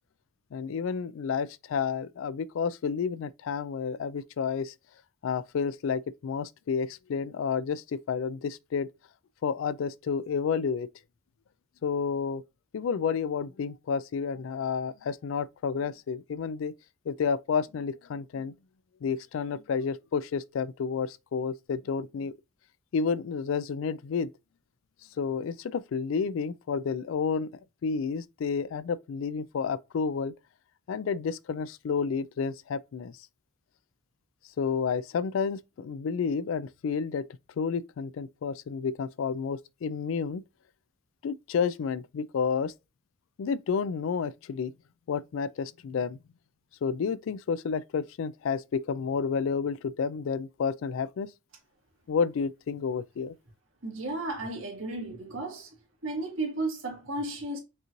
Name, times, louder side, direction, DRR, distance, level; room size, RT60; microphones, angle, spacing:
voice 1, 0.5-4.7 5.2-8.9 9.4-10.9 11.8-12.4 12.7-16.7 17.1-18.5 19.0-22.3 22.9-24.3 25.2-27.5 27.8-30.3 30.9-33.2 34.6-37.3 37.6-40.4 41.2-42.7 43.4-44.7 45.1-46.2 46.8-51.3 52.1-53.4, left 6 dB, 75° left, 0.3 m, -30 dB
voice 2, 53.8-55.7 56.0-57.6, right 2 dB, 80° right, 1.8 m, -34 dB
5.4 x 3.0 x 2.4 m
head